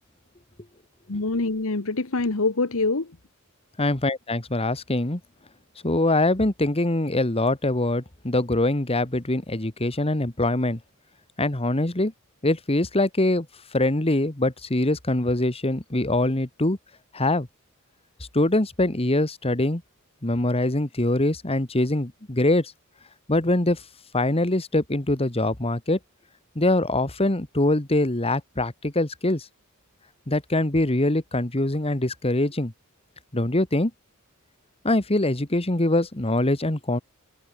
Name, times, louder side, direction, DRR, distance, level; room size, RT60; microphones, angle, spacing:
voice 1, 1.1-3.1, left 3 dB, 65° left, 1.3 m, -25 dB
voice 2, 3.8-5.2 5.8-10.8 11.4-12.1 12.4-13.5 13.7-16.8 17.1-17.5 18.3-19.8 20.2-22.7 23.3-23.8 24.1-26.0 26.6-29.4 30.3-32.7 33.3-33.9 34.8-37.0, left 1 dB, 25° left, 1.8 m, -23 dB
head